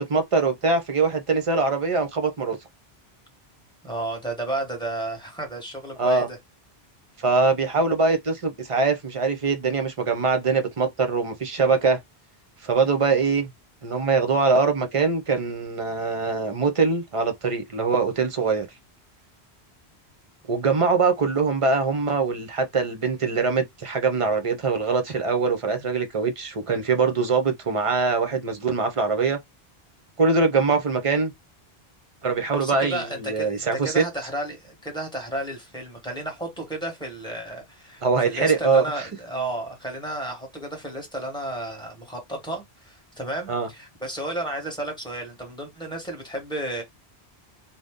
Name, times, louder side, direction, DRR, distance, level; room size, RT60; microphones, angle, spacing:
voice 1, 0.0-2.6 6.0-6.3 7.2-12.0 12.6-13.5 13.8-18.7 20.5-29.4 30.2-31.3 32.2-34.0 38.0-39.1 43.5-43.7, right 4 dB, 40° right, 0.5 m, -23 dB
voice 2, 3.8-6.4 32.5-46.8, right 1 dB, 5° left, 1.1 m, -32 dB
2.6 x 2.1 x 3.5 m
omnidirectional pair, 1.1 m